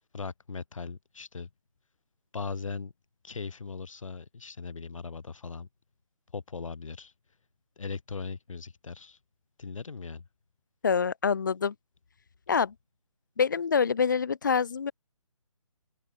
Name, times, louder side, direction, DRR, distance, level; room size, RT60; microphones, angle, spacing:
voice 1, 0.1-1.5 2.3-2.9 3.2-5.7 6.3-7.1 7.8-9.2 9.6-10.2, left 4 dB, 65° left, 1.7 m, -39 dB
voice 2, 10.8-11.7 12.5-12.7 13.4-14.9, left 6 dB, 35° left, 0.5 m, -26 dB
open air
hypercardioid pair, 165°, 18 cm